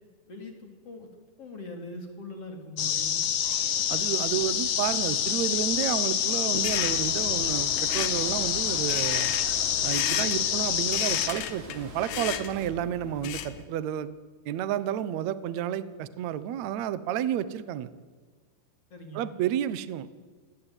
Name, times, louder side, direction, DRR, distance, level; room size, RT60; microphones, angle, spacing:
voice 1, 0.3-1.1 1.4-3.2 18.9-19.3, left 1 dB, 35° left, 4 dB, 4.1 m, -41 dB
sound 1, 2.8-11.3, left 9 dB, 60° left, 2.5 m, -27 dB
sound 2, 3.4-12.7, right 3 dB, 55° right, 5.6 m, -46 dB
voice 2, 3.9-9.3 9.8-14.1 14.4-17.9 19.1-20.1, right 10 dB, 90° right, 15 dB, 1.5 m, -31 dB
sound 3, 6.5-13.6, left 10 dB, 80° left, 3.6 m, -36 dB
27.5 x 23.0 x 9.1 m, 1.5 s
omnidirectional pair, 4.9 m